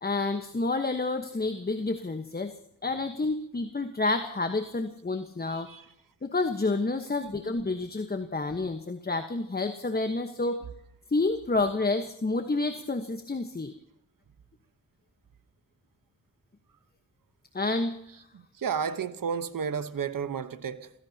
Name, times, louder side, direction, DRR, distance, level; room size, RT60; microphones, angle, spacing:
voice 1, 0.0-2.5 2.8-5.7 6.2-10.6 11.1-13.7 17.5-18.0, left 3 dB, 30° left, 1.3 m, -29 dB
voice 2, 5.5-5.9 6.9-7.6 10.6-10.7 18.3-20.9, right 6 dB, 80° right, 1.2 m, -34 dB
30.0 x 16.5 x 2.9 m
cardioid pair, 65°, 33 cm